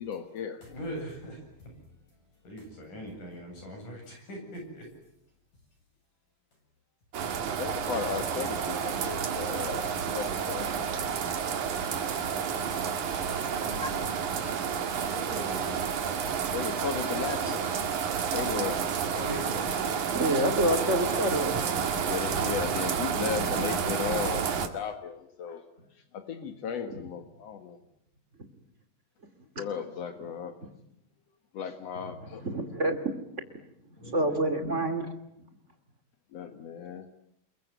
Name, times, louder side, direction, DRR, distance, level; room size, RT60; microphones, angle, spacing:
voice 1, 0.0-0.7 7.6-10.9 16.5-17.7 18.3-18.8 19.6-19.8 22.0-25.6 25.9-27.8 29.6-30.6 31.5-32.4 36.3-37.1, left 7 dB, 65° left, 1.7 m, -36 dB
voice 2, 0.6-1.7 2.4-4.9 13.6-14.5 14.9-16.0 17.6-18.4 19.1-20.7 34.0-34.4, equal, 45° left, 9.2 m, -42 dB
sound 1, 7.1-24.7, right 7 dB, 50° right, 3.0 m, -30 dB
voice 3, 17.3-17.6 20.1-22.0 22.6-22.8 23.3-23.5 26.9-27.0 29.5-29.6 32.4-33.0 34.0-35.1, right 1 dB, 25° right, 1.8 m, -29 dB
28.5 x 22.5 x 9.4 m
omnidirectional pair, 5.0 m